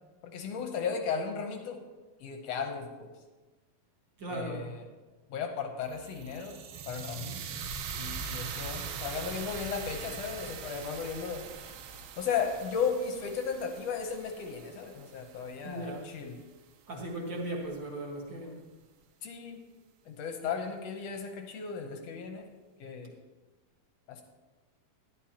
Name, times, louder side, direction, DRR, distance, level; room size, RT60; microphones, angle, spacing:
voice 1, 0.2-1.8 2.2-3.1 4.3-4.9 5.3-7.6 7.9-11.4 12.2-16.4 19.2-19.6 20.0-22.5 22.8-23.1 24.1-24.2, left 6 dB, 75° left, 4 dB, 1.5 m, -35 dB
voice 2, 4.2-4.7 15.6-16.0 16.9-18.6, right 1 dB, 45° right, -2 dB, 1.6 m, -37 dB
sound 1, 5.9-16.0, right 6 dB, 90° right, 2.6 m, -42 dB
13.0 x 11.0 x 2.9 m, 1.2 s
omnidirectional pair, 4.0 m